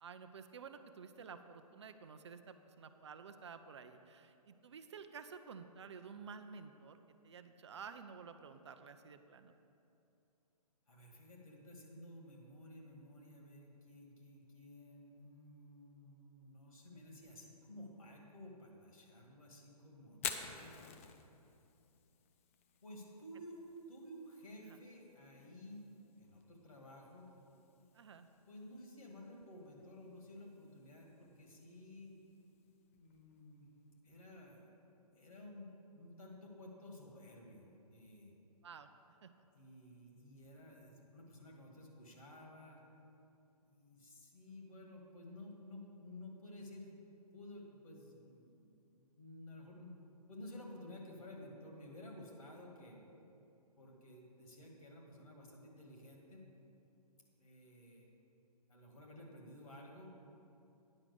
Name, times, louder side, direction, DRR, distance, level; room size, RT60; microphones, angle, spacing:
voice 1, 0.0-7.0 7.2-9.5 24.7-24.8 27.9-28.3 38.6-38.9 39.2-39.3, right 6 dB, 45° right, 9 dB, 0.5 m, -52 dB
voice 2, 10.9-20.8 22.8-25.9 26.2-27.3 28.4-32.1 32.9-34.7 35.1-38.3 39.5-42.8 43.6-46.9 47.3-49.9 50.3-53.0 53.8-56.4 57.4-58.1 58.7-60.1, left 1 dB, 60° left, 0 dB, 2.2 m, -54 dB
Fire, 20.1-34.0, left 7 dB, 20° left, 0.4 m, -52 dB
9.7 x 5.8 x 6.8 m, 2.8 s
figure-of-eight pair, 130°, 20 cm